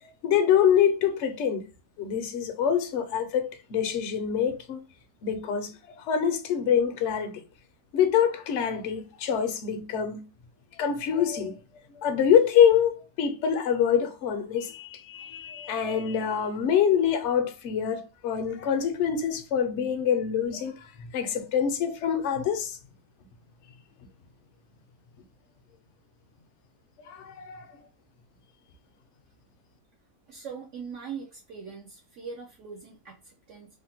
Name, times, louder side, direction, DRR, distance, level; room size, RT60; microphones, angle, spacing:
voice 1, 0.2-1.7 2.0-4.8 5.2-7.4 7.9-10.2 10.8-11.6 12.0-20.7 21.1-22.8 27.1-27.7, left 8 dB, 65° left, 0.8 m, -25 dB
voice 2, 30.3-33.7, right 6 dB, 65° right, 0.9 m, -41 dB
3.5 x 2.1 x 2.7 m
omnidirectional pair, 1.6 m